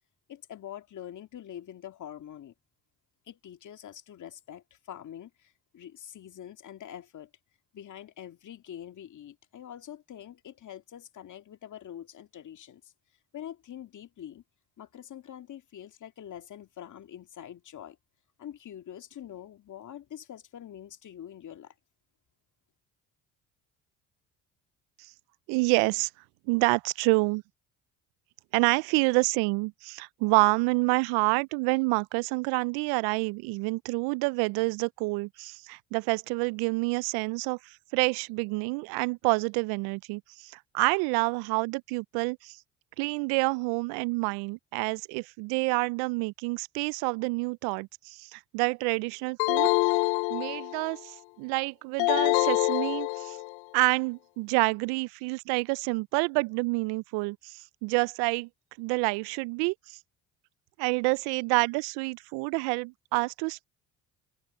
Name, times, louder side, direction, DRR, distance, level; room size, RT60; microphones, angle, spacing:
voice 1, 0.3-2.5 3.3-7.3 7.7-12.9 13.3-14.4 14.8-18.0 18.4-21.7, left 10 dB, 50° left, 2.1 m, -45 dB
voice 2, 25.5-26.1 26.5-27.4 28.5-42.6 43.0-49.7 50.3-53.4 53.7-58.5 58.8-60.0 60.8-63.7, right 29 dB, 80° right, 0.5 m, -28 dB
sound 1, 49.4-51.0 52.0-53.6, left 28 dB, 90° left, 0.5 m, -26 dB
supercardioid pair, 65°, 37 cm